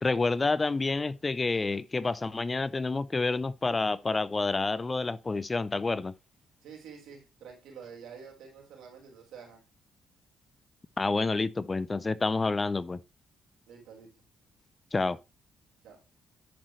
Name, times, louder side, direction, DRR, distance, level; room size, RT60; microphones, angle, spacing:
voice 1, 0.0-6.1 11.0-13.0 14.9-15.2, left 3 dB, 25° left, 0.4 m, -28 dB
voice 2, 6.6-9.6 13.7-14.1 15.8-16.0, right 6 dB, 80° right, 4.2 m, -48 dB
10.0 x 6.2 x 3.1 m
cardioid pair, 90°, 0 cm